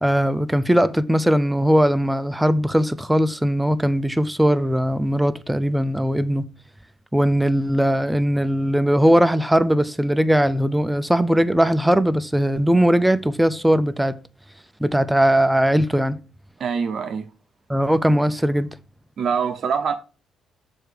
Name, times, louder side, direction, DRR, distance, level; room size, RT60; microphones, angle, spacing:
voice 1, 0.0-6.4 7.1-14.2 14.8-16.2 17.7-18.7, equal, 5° right, 0.4 m, -19 dB
voice 2, 16.6-17.3 19.2-19.9, right 6 dB, 50° right, 0.6 m, -24 dB
6.6 x 4.4 x 4.9 m
cardioid pair, 125°, 0 cm